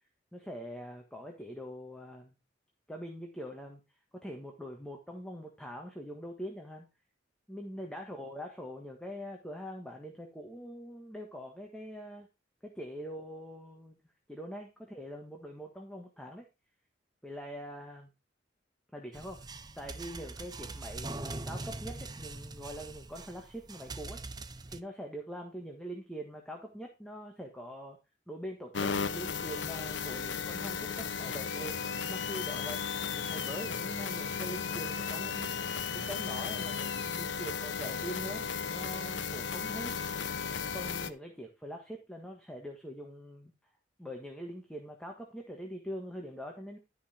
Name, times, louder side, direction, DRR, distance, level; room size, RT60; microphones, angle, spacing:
voice 1, 0.3-2.3 2.9-3.8 4.1-6.9 7.5-12.3 12.6-14.0 14.3-16.5 17.2-18.1 18.9-24.2 24.7-28.0 28.3-31.7 32.1-32.8 33.2-35.5 35.9-40.0 40.7-43.5 44.0-46.8, equal, 5° left, 1 dB, 1.6 m, -43 dB
sound 1, 19.1-24.8, right 2 dB, 20° right, 0.6 m, -42 dB
sound 2, 28.7-41.1, left 6 dB, 85° left, 0.9 m, -35 dB
12.5 x 5.6 x 4.4 m, 0.27 s
head